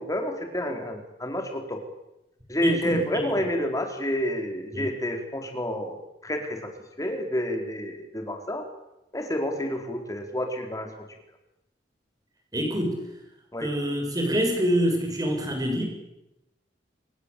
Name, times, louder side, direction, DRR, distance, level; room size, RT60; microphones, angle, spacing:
voice 1, 0.0-1.8 2.5-6.7 7.0-8.7 9.1-11.1 13.5-13.7, equal, 20° left, 4 dB, 4.5 m, -29 dB
voice 2, 2.6-3.2 4.7-4.9 12.5-13.0 13.6-15.8, equal, 20° right, 3 dB, 7.8 m, -26 dB
26.5 x 23.0 x 8.6 m, 0.90 s
head